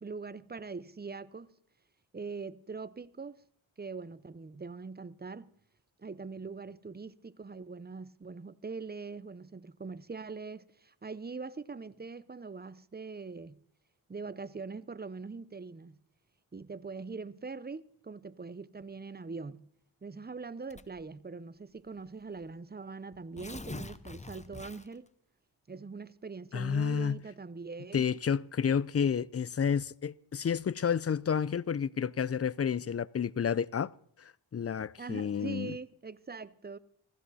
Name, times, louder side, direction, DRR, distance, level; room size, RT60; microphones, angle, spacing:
voice 1, 0.0-1.5 2.1-3.3 3.8-5.5 6.0-13.6 14.1-16.0 16.5-19.7 20.0-25.1 25.7-28.0 35.0-36.8, right 4 dB, 20° right, 0.7 m, -42 dB
Tearing, 20.7-21.1 22.0-22.1 22.4-22.5 23.1-25.1, left 2 dB, 15° left, 0.8 m, -44 dB
voice 2, 26.5-27.2 27.9-33.9 34.2-35.7, left 7 dB, 30° left, 0.5 m, -30 dB
15.5 x 15.0 x 4.2 m
cardioid pair, 55°, 48 cm